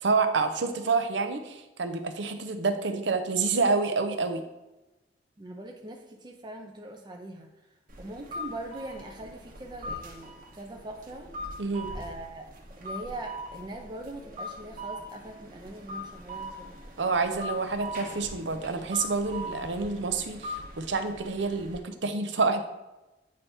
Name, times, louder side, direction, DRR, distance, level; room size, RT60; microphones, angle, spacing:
voice 1, 0.0-4.4 11.6-11.9 17.0-22.6, right 4 dB, 70° right, 8 dB, 0.7 m, -28 dB
voice 2, 5.4-7.5 8.0-11.3 11.9-12.5 12.8-16.8, right 2 dB, 25° right, 2 dB, 0.6 m, -41 dB
sound 1, 7.9-21.8, left 1 dB, 50° right, 1.1 m, -41 dB
8.4 x 3.4 x 4.3 m, 1.0 s
head